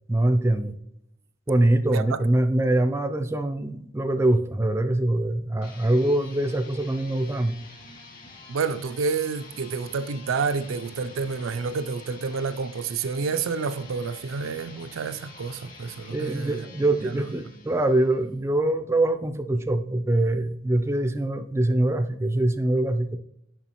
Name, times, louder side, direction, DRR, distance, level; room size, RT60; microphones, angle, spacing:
voice 1, 0.1-0.8 1.5-7.5 16.1-23.2, right 1 dB, 15° right, 0.3 m, -23 dB
voice 2, 1.8-2.2 8.5-16.7 17.1-17.3, right 5 dB, 90° right, 0.4 m, -29 dB
sound 1, 5.5-18.3, left 3 dB, 45° left, 1.7 m, -47 dB
6.9 x 5.4 x 2.9 m
head